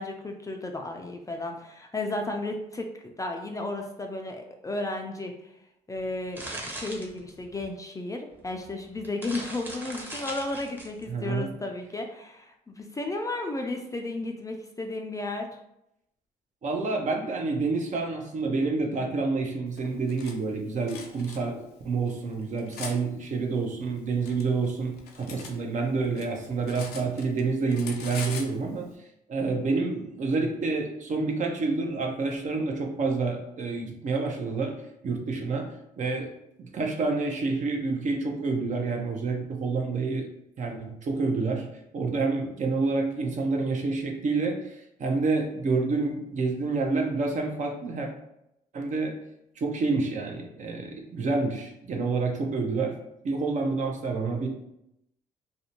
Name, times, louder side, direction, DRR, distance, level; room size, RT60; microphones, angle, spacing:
voice 1, 0.0-5.5 5.9-15.6, left 2 dB, 20° left, 3 dB, 0.4 m, -34 dB
sound 1, 6.0-7.7 8.5-8.6 8.9-11.0, right 1 dB, 10° right, 0.8 m, -39 dB
voice 2, 11.1-11.5 16.6-28.9 29.3-34.8 35.0-35.7 36.0-36.3 36.6-40.3 40.6-41.7 41.9-48.1 48.7-49.1 49.6-52.9 53.2-54.5, right 3 dB, 50° right, 2 dB, 0.6 m, -28 dB
Cutlery silverware, 19.8-20.3 20.9-21.4 22.1-23.0 23.8-25.6 25.9-27.4 27.7-28.5, left 5 dB, 75° left, 0.5 m, -41 dB
2.6 x 2.1 x 2.8 m, 0.81 s
supercardioid pair, 70°, 16 cm